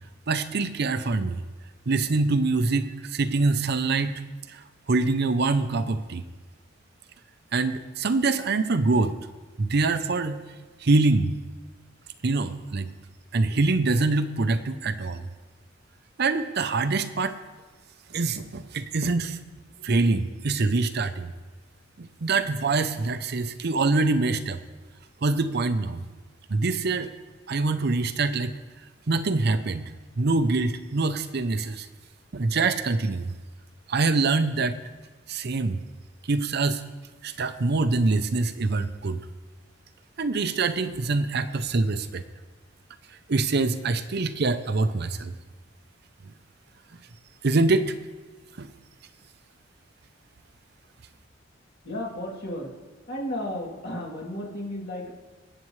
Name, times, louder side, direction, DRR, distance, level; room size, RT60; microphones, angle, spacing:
voice 1, 0.3-1.4 1.9-4.2 4.5-4.6 4.9-6.2 7.5-9.2 9.6-10.4 10.8-11.3 12.2-12.9 13.3-15.3 16.2-17.4 18.1-19.4 19.8-21.3 22.0-24.6 25.2-26.0 26.5-27.1 27.5-28.5 29.1-29.9 30.2-31.9 32.3-33.3 33.9-34.8 35.3-35.8 36.3-36.8 37.2-39.2 40.2-42.2 43.3-45.3 47.4-48.0 48.6-48.7, right 3 dB, 60° right, 10 dB, 0.6 m, -24 dB
voice 2, 51.8-52.7 53.1-55.1, left 1 dB, 55° left, -3 dB, 2.8 m, -33 dB
24.5 x 8.3 x 3.2 m, 1.3 s
head